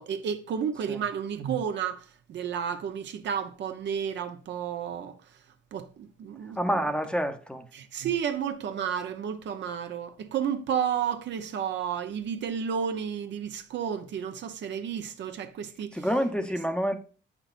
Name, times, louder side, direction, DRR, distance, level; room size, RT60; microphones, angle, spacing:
voice 1, 0.0-5.2 5.7-6.6 7.7-16.1, right 8 dB, 65° right, 0.8 m, -32 dB
voice 2, 6.6-7.6 15.9-17.0, equal, 5° left, 0.8 m, -28 dB
7.8 x 5.9 x 2.5 m
cardioid pair, 90°, 20 cm